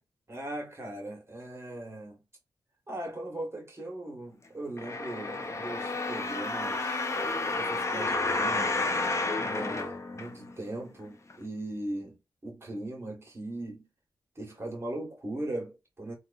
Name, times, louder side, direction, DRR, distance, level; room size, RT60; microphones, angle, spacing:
voice 1, 0.3-2.2 2.9-7.1 7.5-8.8 9.4-12.2 12.4-13.8 14.3-16.2, right 1 dB, 30° right, 1.2 m, -39 dB
sound 1, 4.8-10.7 11.3-11.4, left 3 dB, 35° left, 0.5 m, -31 dB
2.9 x 2.3 x 2.3 m
cardioid pair, 60°, 8 cm